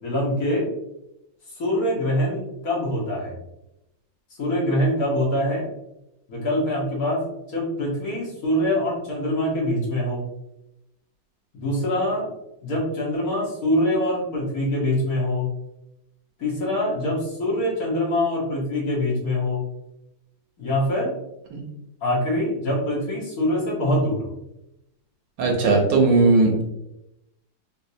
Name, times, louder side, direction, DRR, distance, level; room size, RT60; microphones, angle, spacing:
voice 1, 0.0-0.7 1.5-3.3 4.4-5.7 6.3-10.2 11.5-12.3 12.6-15.5 16.4-19.6 20.6-21.1 22.0-24.3, left 1 dB, 55° left, -5 dB, 1.4 m, -24 dB
voice 2, 25.4-26.6, right 3 dB, 70° right, 1 dB, 1.3 m, -18 dB
4.1 x 2.5 x 2.7 m, 0.86 s
omnidirectional pair, 2.1 m